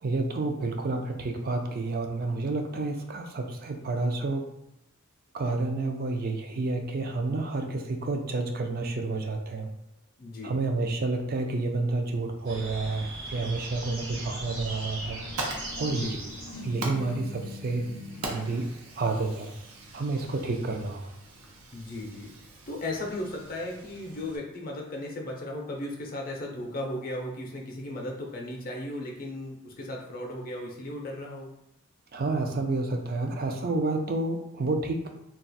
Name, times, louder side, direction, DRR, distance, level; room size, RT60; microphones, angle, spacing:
voice 1, 0.0-4.5 5.3-9.7 10.4-15.2 15.8-16.2 16.6-17.9 18.2-18.7 19.0-19.5 19.9-21.1 32.1-35.1, right 3 dB, 45° right, 4 dB, 0.4 m, -29 dB
voice 2, 10.2-10.5 15.8-16.3 21.7-31.5, left 1 dB, 40° left, 0 dB, 0.5 m, -36 dB
sound 1, 12.5-16.9, right 1 dB, 60° right, 1.1 m, -39 dB
Fire, 14.9-24.4, right 2 dB, 85° right, 0.7 m, -42 dB
sound 2, 15.2-18.5, left 2 dB, 90° left, 0.5 m, -43 dB
2.4 x 2.3 x 3.9 m, 0.82 s
head